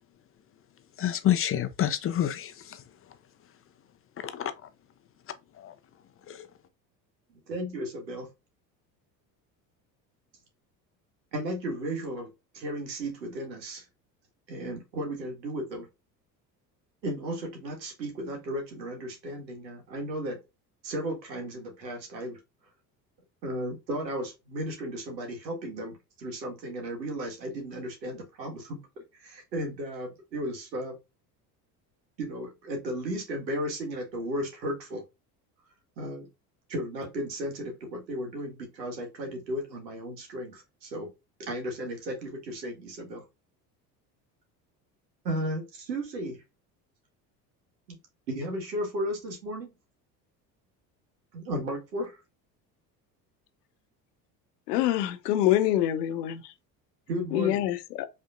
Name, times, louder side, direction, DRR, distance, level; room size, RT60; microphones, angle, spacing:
voice 1, 1.0-2.8 4.2-4.5 5.6-5.7 6.3-6.5, left 11 dB, 30° left, 0.5 m, -28 dB
voice 2, 7.3-8.3 11.3-13.8 14.5-15.9 17.0-20.4 20.8-22.4 23.4-30.9 32.2-35.0 36.0-36.3 36.7-41.1 41.4-43.2 45.2-46.4 47.9-48.0 48.3-49.7 51.3-52.2 57.1-57.6, right 1 dB, 80° right, 1.8 m, -35 dB
voice 3, 54.7-56.5 57.3-58.1, left 13 dB, 70° left, 0.8 m, -26 dB
5.1 x 3.5 x 2.5 m
figure-of-eight pair, 65°, 50 cm